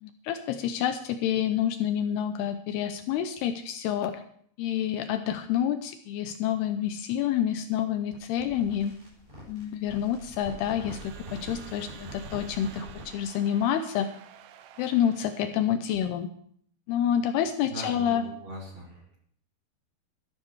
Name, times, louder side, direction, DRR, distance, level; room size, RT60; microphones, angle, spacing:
voice 1, 0.0-4.2 4.6-9.0 9.5-14.1 14.8-16.3 16.9-18.2, left 9 dB, 80° left, 9 dB, 2.5 m, -28 dB
sound 1, 8.1-13.2, right 1 dB, 10° right, 7.8 m, -44 dB
Crowd / Alarm, 10.3-15.9, right 9 dB, 80° right, 3.1 m, -51 dB
voice 2, 17.7-19.2, right 1 dB, 30° right, -3 dB, 3.7 m, -40 dB
12.5 x 12.5 x 4.7 m, 0.63 s
omnidirectional pair, 5.0 m